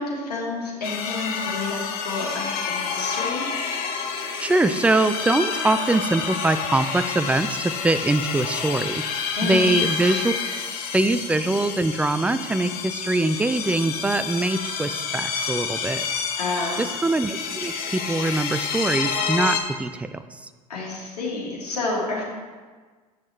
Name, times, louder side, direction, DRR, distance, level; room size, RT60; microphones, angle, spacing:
voice 1, 0.0-3.4 9.3-9.7 16.4-16.8 20.7-22.2, left 3 dB, 80° left, -4 dB, 1.6 m, -29 dB
sound 1, 0.8-19.6, left 6 dB, 50° left, 1.0 m, -29 dB
voice 2, 4.4-9.0 9.4-10.3 10.9-16.2 16.8-20.2, right 2 dB, 5° right, 11 dB, 0.3 m, -23 dB
7.9 x 6.2 x 3.3 m, 1.4 s
hypercardioid pair, 75°, 20 cm